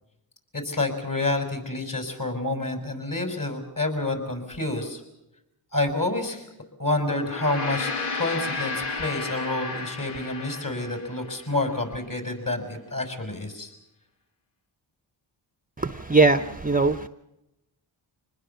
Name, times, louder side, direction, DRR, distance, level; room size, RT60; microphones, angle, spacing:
voice 1, 0.5-5.0 5.7-6.5 6.8-13.7, left 2 dB, 40° left, 6 dB, 5.9 m, -28 dB
Gong, 7.1-11.7, left 3 dB, 85° left, 2.0 m, -33 dB
voice 2, 15.8-17.1, right 3 dB, 15° right, 11 dB, 0.8 m, -21 dB
25.5 x 20.0 x 6.9 m, 0.89 s
cardioid pair, 60°, 49 cm